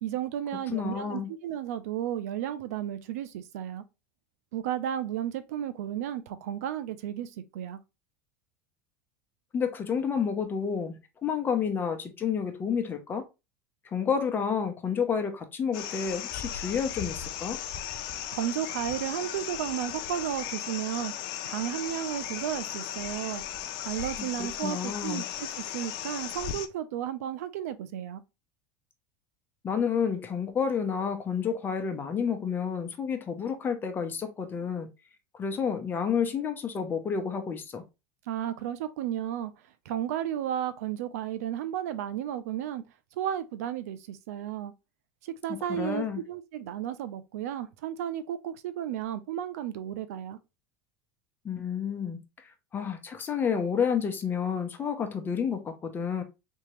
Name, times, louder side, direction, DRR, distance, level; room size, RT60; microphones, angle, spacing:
voice 1, 0.0-3.8 4.5-7.8 18.3-21.1 21.4-23.4 23.8-28.2 38.3-42.8 43.1-44.7 45.2-50.4, right 11 dB, 85° right, 0.5 m, -33 dB
voice 2, 0.7-1.3 9.5-13.2 13.9-17.6 24.4-25.2 29.6-34.9 35.3-37.8 45.7-46.2 51.4-52.2 52.7-56.2, left 6 dB, 25° left, 0.8 m, -30 dB
sound 1, 15.7-26.7, left 10 dB, 60° left, 0.5 m, -36 dB
3.6 x 2.8 x 3.1 m
supercardioid pair, 125°, 8 cm